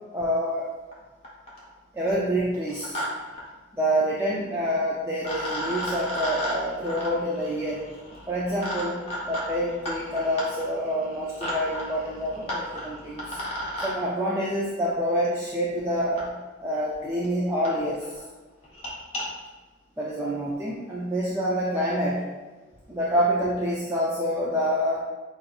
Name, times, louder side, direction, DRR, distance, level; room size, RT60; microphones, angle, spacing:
voice 1, 0.1-0.7 1.9-3.0 3.7-7.8 8.3-13.4 13.8-16.4 16.6-18.1 20.0-22.2 22.9-25.0, equal, 10° right, -6 dB, 0.3 m, -27 dB
sound 1, 0.9-1.0 1.2-1.7 2.5-3.1 3.3-3.4 4.7-4.8 5.2-13.9 15.2-15.3 16.2-16.3 16.9-17.0 17.2-17.3 17.6-17.7 18.0-18.2 18.6-19.2, equal, 30° left, 0.8 m, -34 dB
5.5 x 2.6 x 2.4 m, 1.3 s
head